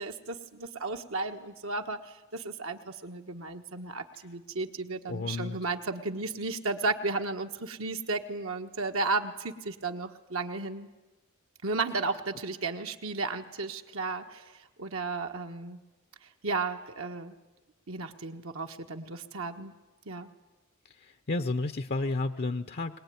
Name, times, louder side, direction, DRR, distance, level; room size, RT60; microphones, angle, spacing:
voice 1, 0.0-10.9 11.6-14.5 14.8-15.8 16.4-17.3 17.9-19.7 20.0-20.3, right 3 dB, 70° right, 5 dB, 1.4 m, -34 dB
voice 2, 5.1-5.6 21.0-23.0, left 2 dB, 45° left, 9 dB, 0.7 m, -31 dB
22.5 x 19.5 x 9.4 m, 1.1 s
head